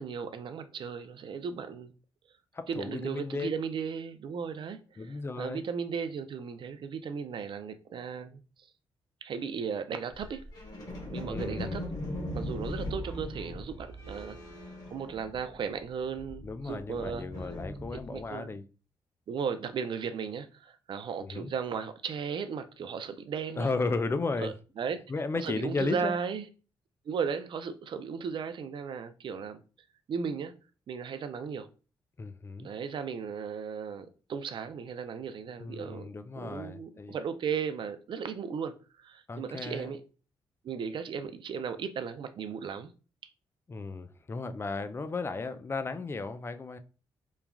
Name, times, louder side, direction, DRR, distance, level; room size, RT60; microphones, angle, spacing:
voice 1, 0.0-1.9 2.7-4.8 5.1-8.4 9.2-10.4 11.1-11.8 12.3-14.4 14.9-17.3 18.1-18.5 19.3-23.7 24.4-25.0 25.3-26.5 27.1-29.6 30.1-30.5 30.9-31.7 32.6-36.1 36.4-40.0 40.6-42.9, right 6 dB, 55° right, 0.4 m, -36 dB
voice 2, 2.5-3.5 5.0-5.6 11.2-11.8 14.8-14.9 16.4-18.6 21.2-21.5 23.6-24.5 25.1-26.1 32.2-32.7 35.6-37.2 39.3-39.9 43.7-46.8, left 3 dB, 25° left, 0.3 m, -34 dB
sound 1, 10.1-15.7 16.0-18.3, left 1 dB, 45° left, 1.2 m, -39 dB
3.1 x 2.3 x 2.2 m
cardioid pair, 65°, 10 cm